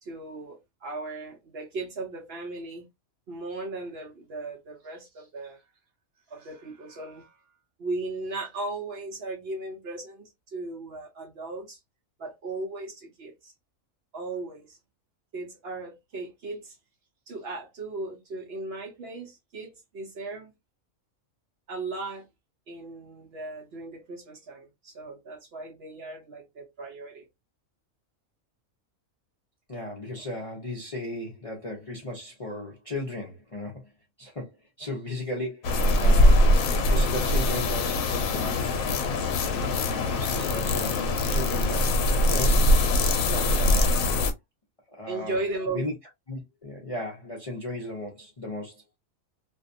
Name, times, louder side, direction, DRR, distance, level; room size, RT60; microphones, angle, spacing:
voice 1, 0.0-2.8 3.3-5.6 6.3-7.4 7.8-11.8 12.2-13.5 14.1-14.8 15.3-16.8 17.3-20.5 21.7-22.3 22.7-27.3 45.1-45.9, right 2 dB, 60° right, 0.7 m, -37 dB
voice 2, 29.7-33.9 34.2-36.5 36.9-38.8 39.9-42.7 43.3-44.1 44.9-45.4 45.7-45.9 46.3-48.8, left 1 dB, 40° left, 0.5 m, -36 dB
sound 1, 35.6-44.3, left 1 dB, 85° left, 1.0 m, -22 dB
2.5 x 2.2 x 2.5 m
omnidirectional pair, 1.4 m